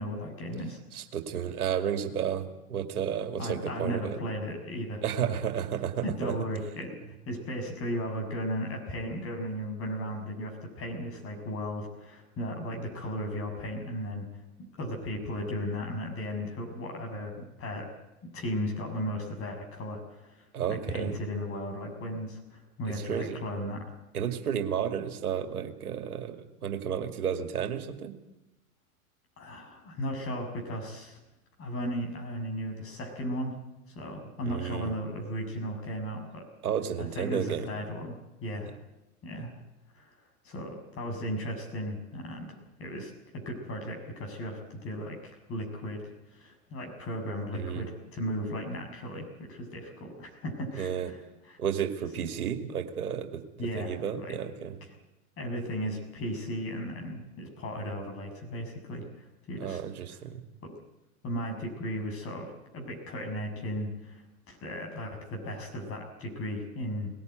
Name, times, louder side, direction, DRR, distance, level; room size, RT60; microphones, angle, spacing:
voice 1, 0.0-0.8 3.4-5.4 6.0-7.0 7.3-14.3 14.8-17.9 18.3-23.9 29.4-31.2 31.6-33.6 33.9-36.5 37.0-38.7 39.2-39.5 39.9-40.1 40.4-46.0 46.3-51.2 51.5-51.6 52.2-52.3 53.6-54.4 54.8-54.9 55.4-59.8 60.1-60.2 60.6-60.7 61.2-67.1, equal, 30° left, 3 dB, 6.9 m, -36 dB
voice 2, 0.9-4.2 5.0-6.3 20.5-21.1 22.9-23.4 24.1-28.1 34.5-34.9 36.6-37.7 39.4-39.5 47.5-47.8 50.8-51.1 51.6-53.4 53.7-54.7 59.6-60.4, right 8 dB, 80° right, 7 dB, 2.4 m, -32 dB
20.5 x 18.0 x 9.3 m, 0.95 s
hypercardioid pair, 110°, 44 cm